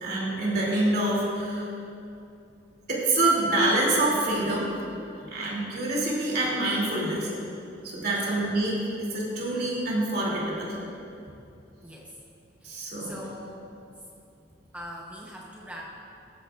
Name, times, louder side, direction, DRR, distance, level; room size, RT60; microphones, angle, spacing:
voice 1, 0.0-1.7 2.9-4.7 5.3-7.3 7.8-10.8 12.6-13.2, right 2 dB, 55° right, -4 dB, 2.6 m, -26 dB
voice 2, 11.8-12.2 12.6-13.6 14.4-14.5 14.7-15.9, equal, 10° right, -3 dB, 0.8 m, -43 dB
17.5 x 9.0 x 2.4 m, 2.6 s
head